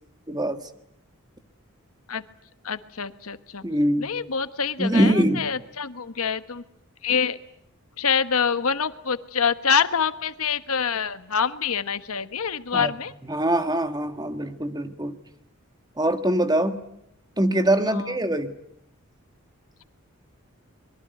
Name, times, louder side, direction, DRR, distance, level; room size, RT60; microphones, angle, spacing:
voice 1, 0.3-0.7 3.6-4.1 4.8-5.5 12.7-12.9 13.3-15.2 16.0-16.8 17.4-18.5, right 1 dB, 20° right, 9 dB, 1.5 m, -23 dB
voice 2, 2.6-3.6 4.0-6.6 7.0-7.4 8.0-13.1 17.9-18.1, left 6 dB, 80° left, 12 dB, 1.2 m, -26 dB
24.0 x 22.5 x 9.3 m, 0.76 s
head